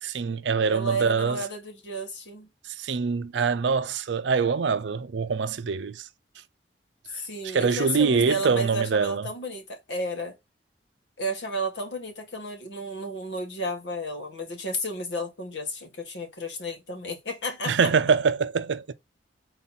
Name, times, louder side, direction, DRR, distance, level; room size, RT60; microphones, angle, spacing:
voice 1, 0.0-1.4 2.6-6.1 7.4-9.3 17.7-18.9, right 5 dB, 90° right, 0.5 m, -24 dB
voice 2, 0.7-2.5 7.1-10.3 11.2-17.9, equal, 85° left, 1.5 m, -32 dB
4.0 x 2.8 x 3.9 m
head